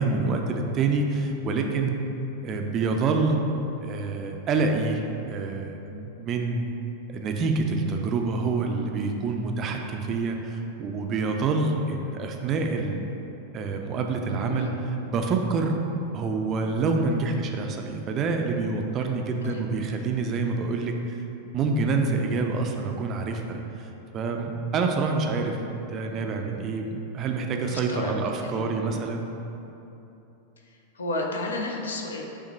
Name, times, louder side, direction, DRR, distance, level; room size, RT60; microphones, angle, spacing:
voice 1, 0.0-2.0 2.4-3.4 3.8-6.6 7.1-13.0 13.5-14.7 15.1-15.8 16.1-21.2 21.5-29.2, right 3 dB, 30° right, 3 dB, 0.4 m, -27 dB
voice 2, 14.4-14.7 19.4-19.6 27.6-28.2 28.4-29.0 30.6-32.2, left 2 dB, 70° left, 1 dB, 0.5 m, -32 dB
5.7 x 2.1 x 4.0 m, 2.9 s
figure-of-eight pair, 90°, 0 cm